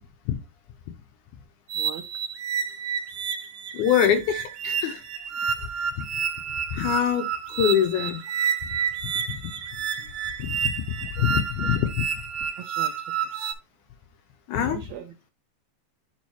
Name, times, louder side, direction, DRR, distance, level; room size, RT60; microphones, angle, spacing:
sound 1, 1.7-13.5, right 7 dB, 65° right, 1.6 m, -30 dB
voice 1, 1.7-2.2 11.0-11.4 12.6-13.3 14.5-15.1, right 10 dB, 90° right, 1.5 m, -41 dB
voice 2, 3.7-5.0 6.7-8.2 10.5-10.8 11.2-12.1 14.5-14.8, left 9 dB, 80° left, 1.9 m, -24 dB
8.7 x 5.5 x 3.0 m
omnidirectional pair, 4.0 m